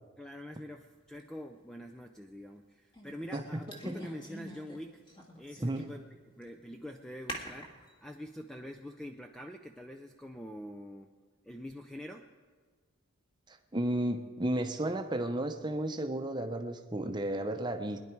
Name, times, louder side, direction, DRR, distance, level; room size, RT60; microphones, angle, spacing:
voice 1, 0.2-5.0 5.4-6.0 6.4-7.7 8.0-11.1 11.4-12.3, equal, 5° left, 5 dB, 0.4 m, -45 dB
sound 1, 1.2-1.3 2.9-4.8 5.1-6.0 6.4-6.5 7.3-7.9, equal, 25° left, 1.8 m, -45 dB
voice 2, 5.6-5.9 13.5-18.0, right 1 dB, 20° right, 6 dB, 0.8 m, -33 dB
21.5 x 10.5 x 4.6 m, 1.5 s
head